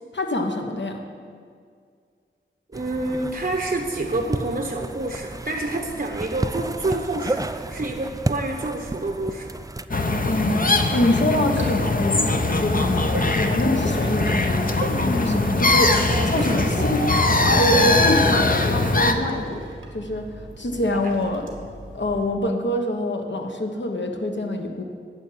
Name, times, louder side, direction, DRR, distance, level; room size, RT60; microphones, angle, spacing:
voice 1, 0.1-1.0 10.2-14.7 15.0-16.0 16.3-17.0 17.4-19.6 19.9-20.3 20.6-21.5 21.9-24.8, left 1 dB, 65° left, 3 dB, 1.2 m, -25 dB
sound 1, 2.7-9.9, right 2 dB, 15° right, 0.4 m, -32 dB
voice 2, 2.7-9.5 16.1-16.9 20.9-21.1, right 2 dB, 50° right, 2 dB, 0.9 m, -28 dB
sound 2, 9.9-19.1, left 2 dB, 45° left, 0.8 m, -21 dB
sound 3, 11.4-22.3, right 2 dB, 90° right, 1.8 m, -38 dB
9.6 x 7.1 x 9.2 m, 2.1 s
wide cardioid pair, 60°, 20 cm